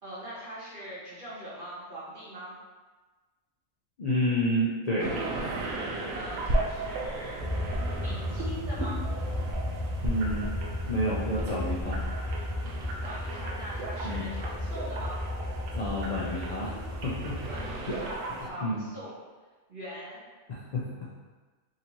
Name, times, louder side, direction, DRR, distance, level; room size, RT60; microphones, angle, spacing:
voice 1, 0.0-2.6 6.1-7.4 8.0-9.0 13.0-15.2 17.5-19.2 19.7-20.2, equal, 45° right, -8 dB, 1.2 m, -42 dB
voice 2, 4.0-5.5 10.0-10.5 10.9-12.0 14.0-14.2 15.7-17.4 17.9-18.0 18.3-18.4 18.6-18.8 20.5-21.3, equal, 60° left, -5 dB, 0.4 m, -30 dB
sound 1, 5.0-18.5, right 2 dB, 85° right, 1.0 m, -36 dB
sound 2, 7.4-17.7, left 1 dB, 65° right, 1.4 m, -34 dB
3.9 x 2.7 x 2.9 m, 1.3 s
omnidirectional pair, 1.3 m